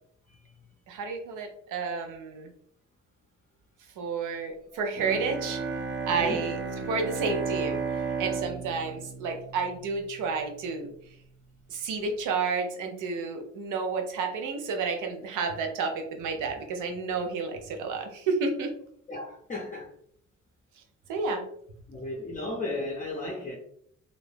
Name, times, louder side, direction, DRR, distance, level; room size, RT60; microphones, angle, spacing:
voice 1, 0.9-2.5 4.0-5.6 6.1-11.1 11.7-18.7 21.1-21.4, right 4 dB, 85° right, 4 dB, 0.7 m, -31 dB
Bowed string instrument, 5.0-10.2, right 5 dB, 40° right, 0.6 m, -33 dB
voice 2, 6.1-6.4 19.1-19.9 21.9-23.6, left 2 dB, 25° left, -2 dB, 0.6 m, -34 dB
2.6 x 2.1 x 3.2 m, 0.65 s
cardioid pair, 90°, 30 cm